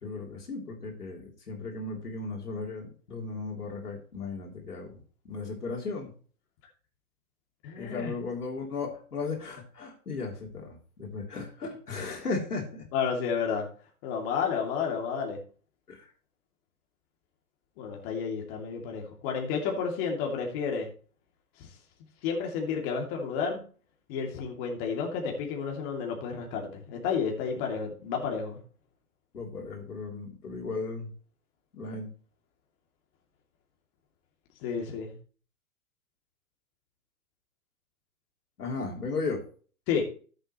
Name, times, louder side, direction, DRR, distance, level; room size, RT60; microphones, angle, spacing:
voice 1, 0.0-4.9 5.3-6.1 7.8-12.9 15.9-16.1 29.3-31.1 31.7-32.1 38.6-39.4, left 3 dB, 85° left, 1 dB, 3.4 m, -36 dB
voice 2, 7.6-8.1 12.9-13.7 14.0-15.4 17.8-20.9 21.6-21.7 22.2-23.6 24.1-28.6 34.6-35.1 39.9-40.0, left 6 dB, 40° left, 1 dB, 2.6 m, -31 dB
13.5 x 7.8 x 3.0 m, 0.40 s
hypercardioid pair, 125°, 45 cm